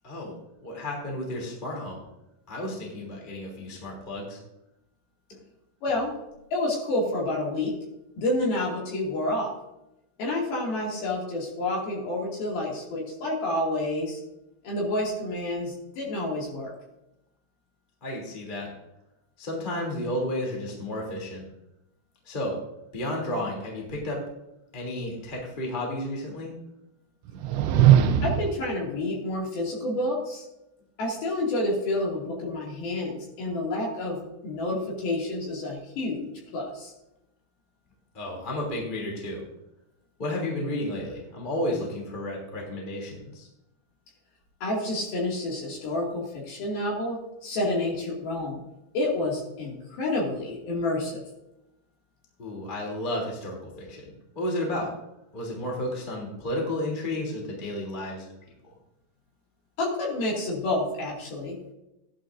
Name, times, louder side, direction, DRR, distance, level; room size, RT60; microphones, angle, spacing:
voice 1, 0.6-2.0 2.5-4.4 18.0-18.7 19.4-21.4 22.2-22.5 22.9-24.2 24.7-26.5 38.1-39.4 40.2-43.5 52.4-54.9 55.3-58.3 58.6-58.7, left 1 dB, 15° left, -2 dB, 1.7 m, -32 dB
voice 2, 5.8-6.1 6.5-7.7 8.2-9.5 10.2-14.2 14.6-16.7 28.2-30.5 31.0-36.9 44.6-48.6 48.9-51.2 59.8-61.6, left 1 dB, 55° left, -3 dB, 3.8 m, -29 dB
sound 1, 27.3-28.6, right 10 dB, 90° right, 2.5 m, -19 dB
15.5 x 11.5 x 2.6 m, 0.89 s
omnidirectional pair, 5.9 m